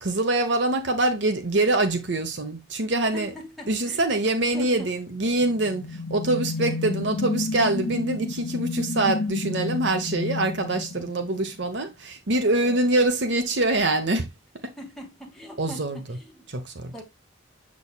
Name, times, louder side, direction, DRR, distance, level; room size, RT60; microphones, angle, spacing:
voice 1, 0.0-3.3 3.7-14.3 15.6-16.0 16.5-16.9, right 2 dB, 65° right, 1.0 m, -24 dB
voice 2, 3.1-4.0 4.5-5.0 6.6-6.9 12.6-12.9 14.8-16.5 16.9-17.0, equal, ahead, 2.0 m, -41 dB
sound 1, 5.4-11.7, left 3 dB, 55° left, 0.8 m, -31 dB
7.0 x 6.4 x 2.3 m
head